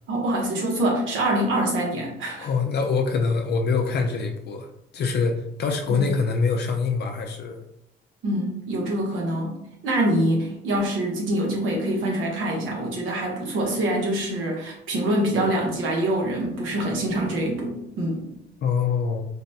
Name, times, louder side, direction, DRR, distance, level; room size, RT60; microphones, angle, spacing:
voice 1, 0.1-2.5 5.9-6.0 8.2-18.3, right 1 dB, 80° right, -1 dB, 1.0 m, -25 dB
voice 2, 2.4-4.7 4.9-7.6 18.6-19.2, left 5 dB, 55° left, 3 dB, 0.4 m, -24 dB
3.9 x 2.1 x 2.7 m, 0.79 s
cardioid pair, 90°, 20 cm